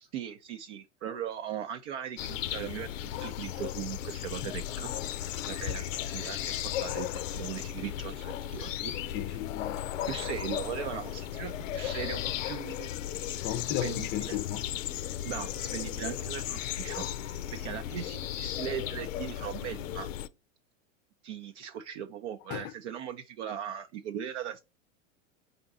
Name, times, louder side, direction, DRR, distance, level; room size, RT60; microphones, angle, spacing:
voice 1, 0.0-4.9 5.5-9.2 10.1-12.9 13.8-14.4 15.2-20.1 21.2-24.6, right 9 dB, 65° right, 0.6 m, -39 dB
sound 1, 2.2-20.3, left 11 dB, 75° left, 0.5 m, -35 dB
voice 2, 9.1-9.8 13.4-14.6 22.5-22.7, left 12 dB, 25° left, 0.5 m, -34 dB
4.4 x 2.7 x 3.8 m
hypercardioid pair, 100°, 39 cm